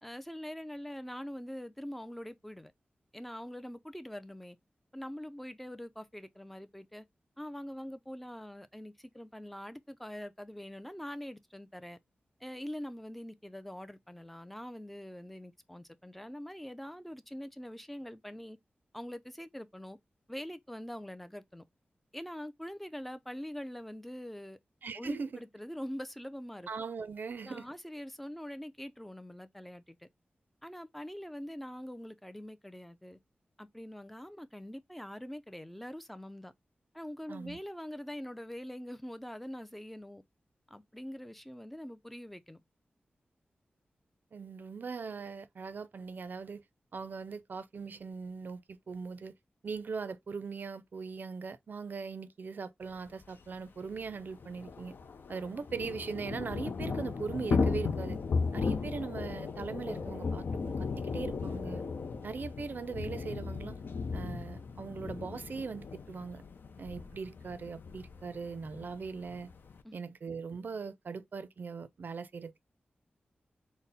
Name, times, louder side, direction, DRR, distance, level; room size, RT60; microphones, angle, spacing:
voice 1, 0.0-2.7 3.1-4.6 4.9-7.1 7.4-12.0 12.4-18.6 18.9-20.0 20.3-21.6 22.1-24.6 24.9-26.7 27.4-30.1 30.6-33.2 33.6-36.5 36.9-40.2 40.7-42.6 69.8-70.0, equal, 5° left, 0.4 m, -44 dB
voice 2, 24.8-25.4 26.7-27.7 37.3-37.6 44.3-46.6 46.9-49.3 49.6-55.0 55.3-58.2 58.5-61.8 62.2-63.8 64.1-66.4 66.8-69.5 69.9-72.6, right 5 dB, 60° right, 0.4 m, -40 dB
Thunder / Rain, 53.2-53.3 53.5-53.6 53.9-69.8, left 4 dB, 70° left, 0.5 m, -36 dB
4.1 x 2.0 x 3.8 m
wide cardioid pair, 105°, 4 cm